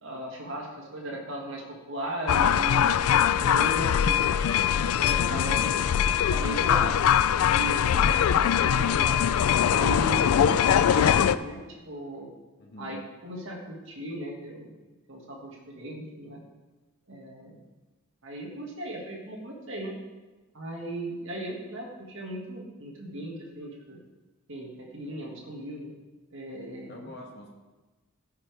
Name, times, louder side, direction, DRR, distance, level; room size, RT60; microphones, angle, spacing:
voice 1, 0.0-4.2 5.0-5.7 6.3-9.1 9.7-12.3 12.8-14.8 15.1-16.4 17.1-17.6 18.2-20.0 20.5-24.0 24.5-25.9 26.3-27.1, right 1 dB, 60° right, -1 dB, 1.8 m, -37 dB
sound 1, 2.3-11.4, left 9 dB, 80° left, 0.3 m, -22 dB
voice 2, 5.1-6.3 12.6-13.0 26.9-27.5, left 1 dB, 50° left, -1 dB, 1.4 m, -45 dB
14.5 x 5.7 x 3.4 m, 1.2 s
head